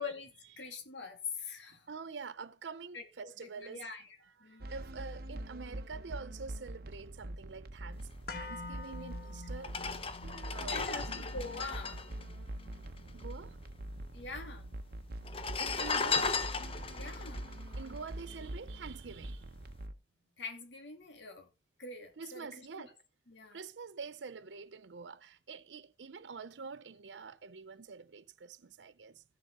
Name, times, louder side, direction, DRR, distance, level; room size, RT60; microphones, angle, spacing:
voice 1, 0.0-1.9 2.9-3.0 3.4-4.0 4.4-4.8 10.7-12.3 14.1-14.7 16.9-17.4 20.4-21.5 21.8-22.9 23.3-23.6, left 4 dB, 85° left, 2.8 m, -44 dB
voice 2, 1.9-3.8 4.4-11.3 13.1-13.6 15.6-17.0 17.8-19.5 22.2-23.0 23.5-29.2, right 5 dB, 85° right, 0.6 m, -46 dB
sound 1, 4.6-19.9, right 1 dB, 55° right, 0.9 m, -44 dB
sound 2, 8.3-16.3 16.7-16.8, left 3 dB, 55° left, 1.5 m, -50 dB
sound 3, 8.9-9.0 9.6-13.3 13.5-13.6 13.8-14.5 15.2-18.7 19.1-19.3, left 5 dB, 30° left, 0.9 m, -36 dB
15.0 x 7.3 x 3.7 m
head